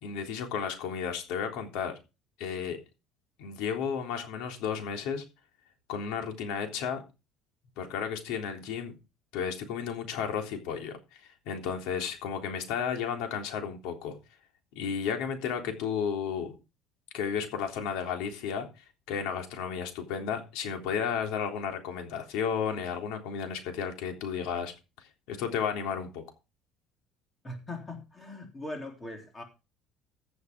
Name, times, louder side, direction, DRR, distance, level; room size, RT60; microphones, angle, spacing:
voice 1, 0.0-2.0 2.4-2.8 3.4-5.2 5.9-7.0 7.8-8.9 9.3-11.0 11.4-14.2 14.7-16.6 17.1-24.7 25.3-26.2, left 7 dB, 80° left, 3.4 m, -33 dB
voice 2, 27.4-29.4, left 1 dB, 15° left, 3.4 m, -40 dB
15.0 x 7.0 x 4.7 m
cardioid pair, 160°, 0 cm